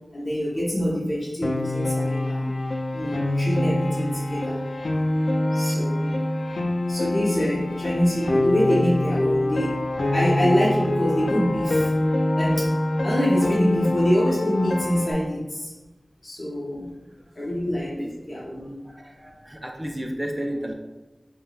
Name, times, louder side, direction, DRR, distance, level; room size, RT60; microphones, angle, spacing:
voice 1, 0.1-2.6 2.9-4.6 5.5-6.2 6.9-9.8 10.1-11.9 12.4-12.7 13.0-15.7 16.2-16.9 17.3-18.0 18.3-18.9, equal, 40° left, -5 dB, 0.9 m, -25 dB
Piano, 1.4-15.1, left 1 dB, 90° left, 0.3 m, -25 dB
voice 2, 18.8-20.7, right 1 dB, 20° right, 2 dB, 0.4 m, -32 dB
5.3 x 2.0 x 2.4 m, 1.1 s
wide cardioid pair, 50°, 0 cm